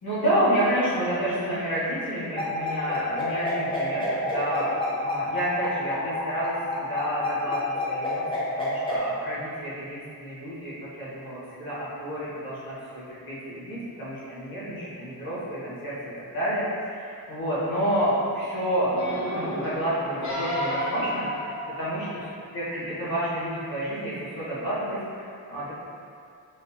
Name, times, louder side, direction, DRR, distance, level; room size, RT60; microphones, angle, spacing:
voice 1, 0.0-8.2 8.6-15.9 16.3-21.5 21.8-22.0 22.5-25.7, equal, 70° left, -11 dB, 1.5 m, -29 dB
sound 1, 2.4-9.0, left 2 dB, 15° left, 0.6 m, -29 dB
sound 2, 18.9-22.4 23.0-23.1, equal, 50° left, 0.8 m, -31 dB
3.8 x 3.2 x 2.8 m, 2.4 s
wide cardioid pair, 180°, 37 cm